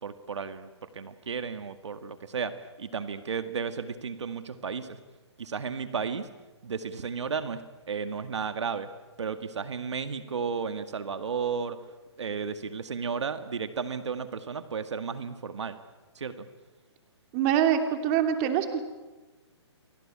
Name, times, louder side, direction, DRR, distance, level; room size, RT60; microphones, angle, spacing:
voice 1, 0.0-5.0 5.4-6.3 6.6-8.9 9.2-11.8 12.2-15.8 16.2-16.5, right 6 dB, 80° right, 10 dB, 2.0 m, -33 dB
voice 2, 17.3-18.9, right 9 dB, 30° right, 6 dB, 3.0 m, -25 dB
29.5 x 21.5 x 8.8 m, 1.2 s
hypercardioid pair, 150°, 15 cm